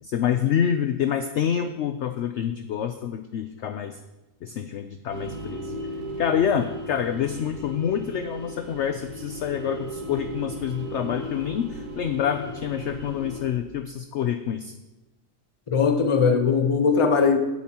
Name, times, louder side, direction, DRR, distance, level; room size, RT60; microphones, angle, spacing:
voice 1, 0.0-4.0 4.4-5.8 6.2-14.7, left 9 dB, 70° left, 9 dB, 0.7 m, -27 dB
sound 1, 5.1-13.5, equal, 80° right, 1.9 m, -36 dB
voice 2, 15.7-17.4, left 5 dB, 30° left, 6 dB, 0.6 m, -20 dB
15.5 x 8.2 x 2.9 m, 1.1 s
omnidirectional pair, 1.6 m